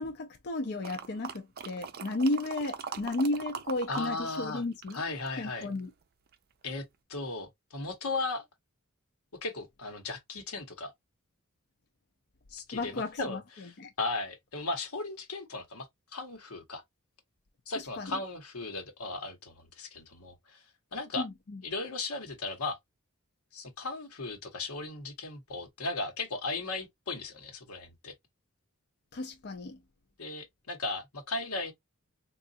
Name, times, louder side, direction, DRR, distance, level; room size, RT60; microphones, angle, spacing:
voice 1, 0.0-5.0 5.4-5.9 12.7-13.9 17.8-18.2 21.2-21.6 29.1-29.8, left 2 dB, 50° left, 0.5 m, -34 dB
sound 1, 0.8-4.1 4.3-5.8 6.3-6.4, right 7 dB, 45° right, 0.5 m, -41 dB
voice 2, 3.9-4.6 4.9-5.7 6.6-8.5 9.4-10.9 12.5-13.7 14.0-16.8 17.7-20.6 20.9-21.2 21.6-22.8 23.5-28.1 30.2-31.7, left 3 dB, 90° left, 1.1 m, -36 dB
3.9 x 2.4 x 2.6 m
head